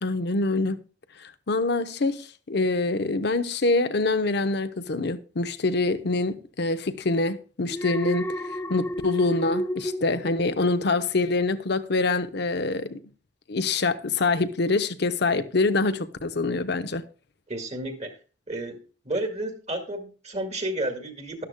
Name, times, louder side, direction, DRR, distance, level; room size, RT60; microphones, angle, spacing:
voice 1, 0.0-0.8 1.5-8.3 8.7-13.0 13.5-17.0, left 3 dB, 65° left, 0.8 m, -25 dB
Alarm, 7.7-11.0 11.4-11.7, equal, 15° left, 0.7 m, -32 dB
voice 2, 17.5-18.1 18.5-21.4, right 1 dB, 40° right, 1.9 m, -31 dB
12.5 x 11.5 x 2.2 m
head